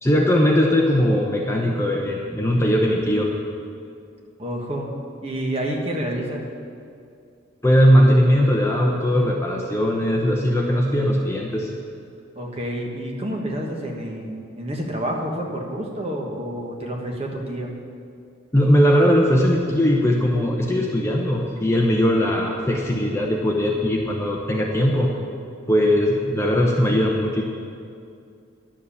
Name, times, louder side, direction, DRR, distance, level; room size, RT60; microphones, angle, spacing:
voice 1, 0.0-3.3 7.6-11.7 18.5-25.1 25.7-27.4, equal, 15° left, -1 dB, 0.7 m, -19 dB
voice 2, 4.4-4.9 5.2-6.4 12.3-17.7, right 1 dB, 30° right, -1 dB, 1.3 m, -29 dB
11.0 x 7.4 x 7.0 m, 2.4 s
head